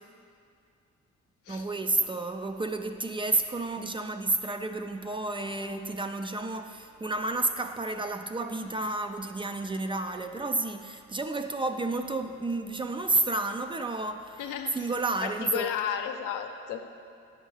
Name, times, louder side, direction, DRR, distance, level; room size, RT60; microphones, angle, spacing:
voice 1, 1.5-14.4 14.7-15.7, right 2 dB, 20° right, 7 dB, 0.3 m, -31 dB
voice 2, 14.4-14.7 15.2-16.8, left 8 dB, 90° left, 6 dB, 0.6 m, -33 dB
9.0 x 6.5 x 3.2 m, 2.4 s
cardioid pair, 90°, 30 cm